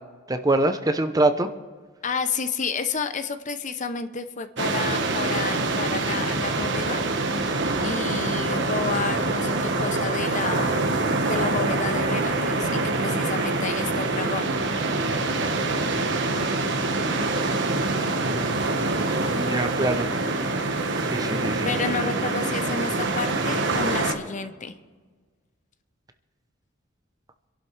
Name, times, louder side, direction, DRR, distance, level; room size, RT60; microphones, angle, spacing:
voice 1, 0.3-1.5 18.2-18.9 19.3-20.1 21.0-21.7, right 2 dB, 20° right, 8 dB, 0.7 m, -25 dB
voice 2, 2.0-7.0 7.8-10.8 11.3-14.5 21.7-24.7, left 5 dB, 40° left, 10 dB, 0.7 m, -30 dB
sound 1, 4.6-24.1, right 2 dB, 65° right, 1.3 m, -25 dB
25.5 x 11.5 x 3.3 m, 1.4 s
head